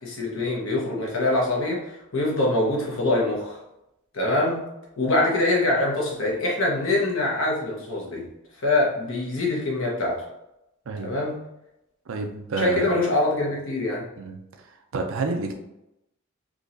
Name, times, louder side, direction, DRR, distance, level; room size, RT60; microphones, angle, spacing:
voice 1, 0.0-3.6 4.1-4.6 5.0-8.2 8.6-10.2 11.0-11.4 12.6-14.0, left 2 dB, 75° left, -3 dB, 1.2 m, -24 dB
voice 2, 12.1-12.9 14.2-14.4 14.7-15.6, right 3 dB, 70° right, 4 dB, 0.5 m, -28 dB
3.7 x 2.9 x 2.6 m, 0.87 s
head